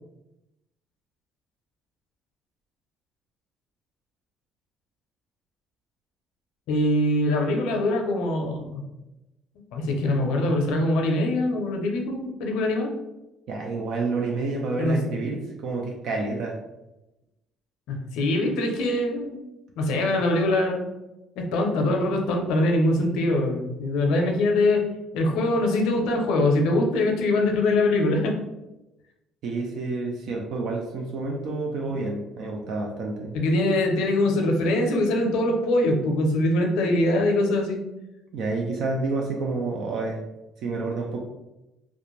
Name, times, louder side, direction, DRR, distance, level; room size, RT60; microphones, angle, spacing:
voice 1, 6.7-8.8 9.7-12.9 14.8-15.2 17.9-19.4 19.8-20.9 21.4-24.8 25.1-28.4 33.3-37.8, left 1 dB, 80° left, 2 dB, 0.5 m, -23 dB
voice 2, 13.5-16.6 29.4-33.4 38.3-40.3 40.6-41.2, right 3 dB, 65° right, 0 dB, 0.4 m, -29 dB
2.4 x 2.1 x 3.0 m, 0.97 s
cardioid pair, 95°, 0 cm